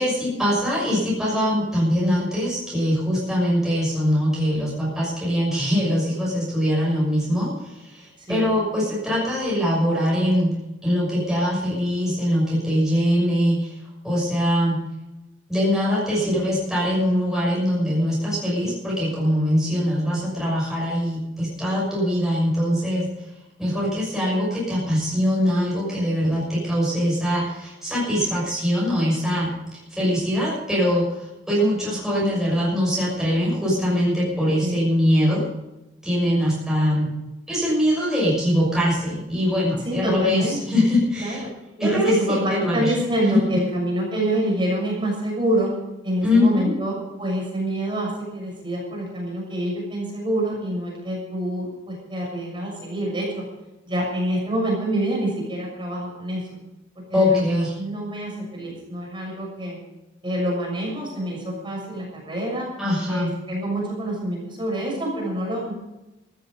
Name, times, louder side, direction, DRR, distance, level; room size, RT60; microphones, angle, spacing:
voice 1, 0.0-10.5 10.8-13.7 14.0-14.8 15.5-23.1 23.6-35.5 36.0-37.1 37.5-41.4 41.8-42.9 43.3-43.6 46.2-46.7 57.1-57.7 62.8-63.3, equal, 5° right, -6 dB, 6.4 m, -22 dB
voice 2, 39.8-40.6 41.2-41.5 41.8-45.7 46.0-53.4 53.9-56.4 57.1-59.8 60.2-62.7 63.0-65.7, right 1 dB, 25° right, -3 dB, 6.6 m, -26 dB
15.0 x 13.0 x 5.3 m, 0.98 s
head